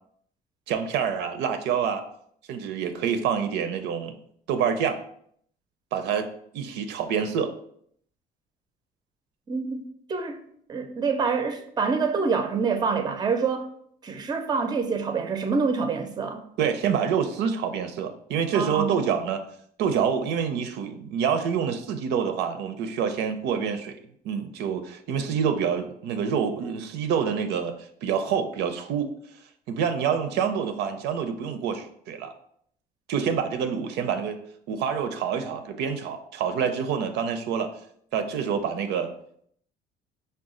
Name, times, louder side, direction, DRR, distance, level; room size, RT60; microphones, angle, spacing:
voice 1, 0.7-2.0 2.5-4.1 4.5-5.0 5.9-6.2 6.5-7.5 16.6-19.4 19.8-24.0 24.2-27.7 28.0-29.1 29.7-32.3 33.1-34.4 34.7-37.7 38.1-39.1, right 7 dB, 80° right, 0.5 m, -27 dB
voice 2, 9.5-9.8 10.1-10.4 10.7-13.7 14.0-16.4 18.5-18.9, right 5 dB, 25° right, 0.5 m, -26 dB
4.8 x 2.3 x 3.7 m
cardioid pair, 110°, 17 cm